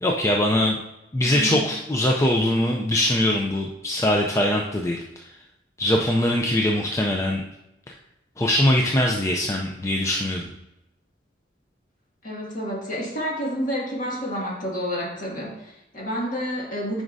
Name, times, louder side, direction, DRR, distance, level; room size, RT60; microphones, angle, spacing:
voice 1, 0.0-0.8 1.1-5.3 5.8-7.4 8.4-10.5, left 1 dB, 15° left, 0 dB, 0.4 m, -22 dB
voice 2, 1.2-1.7 12.2-17.0, equal, 45° left, -4 dB, 2.1 m, -29 dB
9.3 x 5.0 x 2.6 m, 0.91 s
head